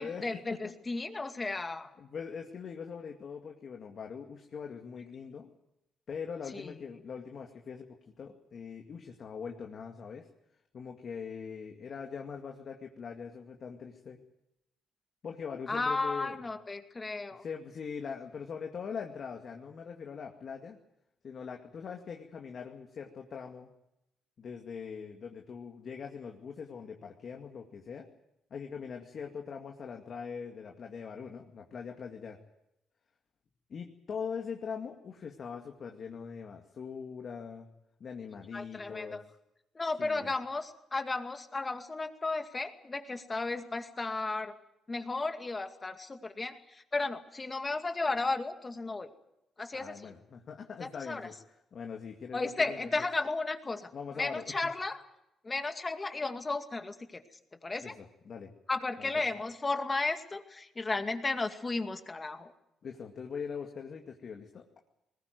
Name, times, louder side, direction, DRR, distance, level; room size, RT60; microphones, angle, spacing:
voice 1, 0.0-1.9 6.5-6.7 15.7-17.4 38.5-39.2 39.7-44.6 44.9-49.1 49.6-50.1 50.8-51.3 52.3-55.0 55.4-58.0 58.7-62.5, left 3 dB, 25° left, 7 dB, 2.2 m, -34 dB
voice 2, 2.0-5.5 6.1-10.3 10.7-14.2 15.2-16.4 17.4-20.8 21.2-23.7 24.4-28.1 28.5-32.4 33.7-37.7 38.0-39.2 40.0-40.3 49.7-51.3 51.7-52.8 53.9-54.4 57.8-58.5 59.0-59.1 62.8-64.6, left 6 dB, 50° left, 2 dB, 2.3 m, -42 dB
21.0 x 19.0 x 9.5 m, 0.85 s
cardioid pair, 90°, 0 cm